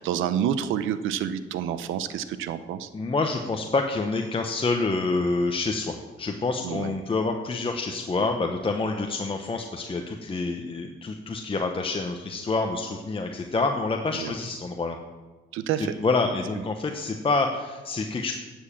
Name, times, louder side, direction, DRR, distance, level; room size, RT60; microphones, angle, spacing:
voice 1, 0.0-2.9 6.6-6.9 14.2-14.3 15.5-15.9, right 9 dB, 90° right, 12 dB, 0.8 m, -28 dB
voice 2, 2.9-15.0 15.8-18.3, left 3 dB, 25° left, 3 dB, 1.0 m, -27 dB
11.5 x 7.3 x 7.3 m, 1.3 s
cardioid pair, 90°, 20 cm